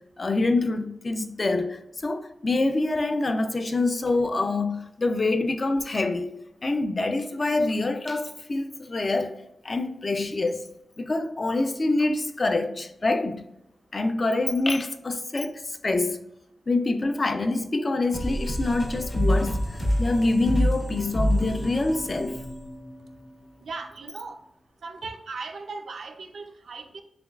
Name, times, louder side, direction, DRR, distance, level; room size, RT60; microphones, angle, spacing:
voice 1, 0.2-6.3 6.6-9.4 9.6-10.7 11.0-13.4 13.9-16.2 16.7-19.6 20.0-22.4, left 2 dB, 35° left, 0.4 m, -26 dB
sound 1, 18.1-23.4, equal, 50° left, 1.1 m, -27 dB
voice 2, 23.6-24.4 24.8-27.0, right 4 dB, 75° right, 0.4 m, -38 dB
6.8 x 2.3 x 2.3 m
wide cardioid pair, 145°, 0 cm